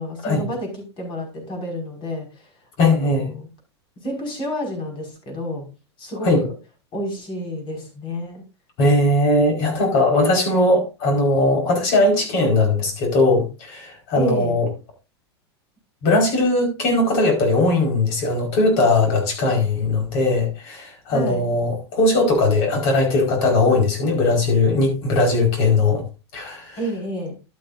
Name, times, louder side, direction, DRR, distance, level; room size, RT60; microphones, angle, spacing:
voice 1, 0.0-2.5 2.8-3.5 4.0-5.7 6.0-6.5 6.9-8.5 14.1-14.6 21.1-21.5 26.8-27.4, equal, 35° left, 5.7 m, -30 dB
voice 2, 2.8-3.3 6.2-6.4 8.8-14.7 16.0-26.0 26.3-26.8, left 2 dB, 50° left, 4.9 m, -19 dB
12.0 x 8.9 x 2.6 m
hypercardioid pair, 105°, 14 cm